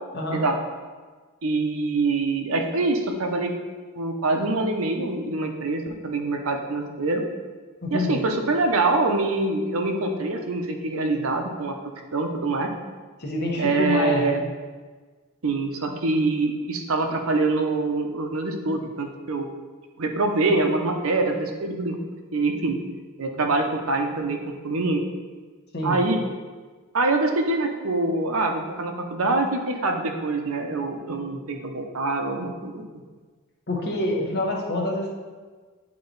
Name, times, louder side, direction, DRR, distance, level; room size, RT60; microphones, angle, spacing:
voice 1, 1.4-3.5 4.0-7.2 7.9-11.7 12.1-12.7 13.6-14.4 15.4-19.4 20.0-22.0 22.3-22.8 23.2-24.4 24.6-25.0 25.8-26.2 26.9-32.8, right 2 dB, 80° right, 3 dB, 0.7 m, -24 dB
voice 2, 7.8-8.2 13.2-14.4 25.7-26.0 33.7-35.1, left 1 dB, 50° left, -1 dB, 1.1 m, -26 dB
8.7 x 3.1 x 3.9 m, 1.4 s
head